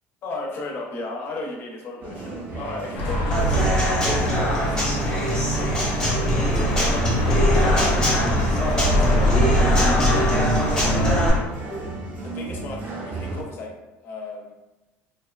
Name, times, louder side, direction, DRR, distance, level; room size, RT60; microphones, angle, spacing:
voice 1, 0.2-3.8 4.2-5.5 5.9-11.3 11.7-11.9 12.2-13.7 14.0-14.5, left 2 dB, 45° left, 0 dB, 0.5 m, -35 dB
sound 1, 2.0-13.4, right 2 dB, 40° right, 0.5 m, -34 dB
sound 2, 2.9-11.4, equal, 85° left, 0.6 m, -23 dB
Human voice / Acoustic guitar / Drum, 3.3-11.3, equal, 15° left, 0.8 m, -24 dB
2.5 x 2.2 x 2.2 m, 1.0 s
cardioid pair, 135°, 5 cm